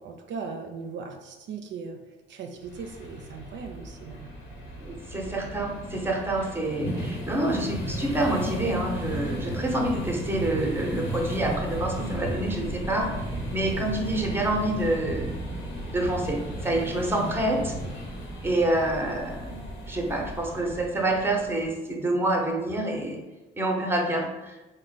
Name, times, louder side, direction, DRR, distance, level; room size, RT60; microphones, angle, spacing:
voice 1, 0.0-2.0 2.3-4.3, right 5 dB, 65° right, 4 dB, 0.5 m, -38 dB
sound 1, 2.6-21.7, equal, 75° left, 1.1 m, -35 dB
voice 2, 4.8-15.3 15.9-17.8 18.4-23.2 23.6-24.6, right 1 dB, 10° right, 1 dB, 0.7 m, -27 dB
3.7 x 2.1 x 4.0 m, 1.1 s
cardioid pair, 90°, 20 cm